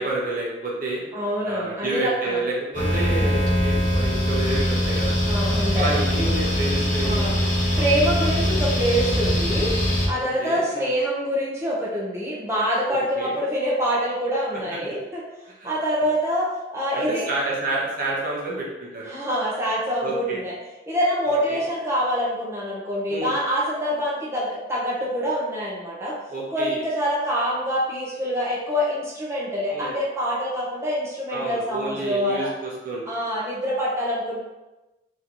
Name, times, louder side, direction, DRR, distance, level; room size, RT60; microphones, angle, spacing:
voice 1, 0.0-1.0 1.4-5.2 5.8-7.5 7.7-8.0 10.4-10.9 12.9-13.3 14.7-14.8 15.6-15.7 16.9-19.1 20.0-20.4 21.5-21.6 23.1-23.4 26.3-26.8 29.7-30.0 31.3-33.0, right 2 dB, 45° right, -4 dB, 1.0 m, -29 dB
voice 2, 1.1-2.4 3.0-3.5 5.3-5.9 7.0-7.3 7.8-9.7 10.0-15.2 15.6-16.5 16.7-17.3 19.1-20.5 20.9-26.2 26.5-32.5 33.1-34.4, equal, 15° right, -6 dB, 0.9 m, -25 dB
sound 1, 2.7-10.1, equal, 40° left, 1.1 m, -22 dB
3.0 x 3.0 x 3.9 m, 1.1 s
head